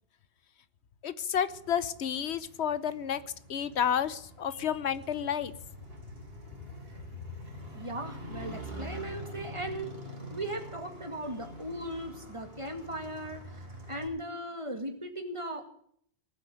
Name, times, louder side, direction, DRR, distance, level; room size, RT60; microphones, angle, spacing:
voice 1, 1.0-3.2 3.5-5.5, left 8 dB, 85° left, 15 dB, 1.1 m, -30 dB
Motorcycle, 1.5-14.1, equal, 65° right, 3.6 m, -45 dB
voice 2, 7.7-9.9 10.3-13.4 13.9-15.7, right 1 dB, 30° right, 5 dB, 2.2 m, -38 dB
19.0 x 7.7 x 9.0 m, 0.64 s
omnidirectional pair, 1.1 m